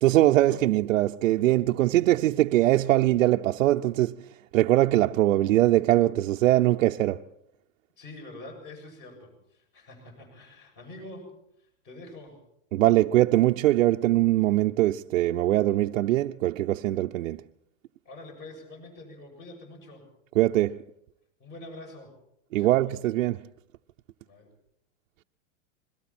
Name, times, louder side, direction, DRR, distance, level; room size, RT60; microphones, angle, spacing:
voice 1, 0.0-7.2 12.7-17.4 20.3-20.8 22.5-23.5, right 15 dB, 85° right, 0.8 m, -22 dB
voice 2, 8.0-11.3 11.6-12.4 18.0-20.1 21.4-22.2 22.6-22.8 24.3-24.5, left 2 dB, 25° left, 7.3 m, -45 dB
28.0 x 22.5 x 4.4 m
supercardioid pair, 175°, 38 cm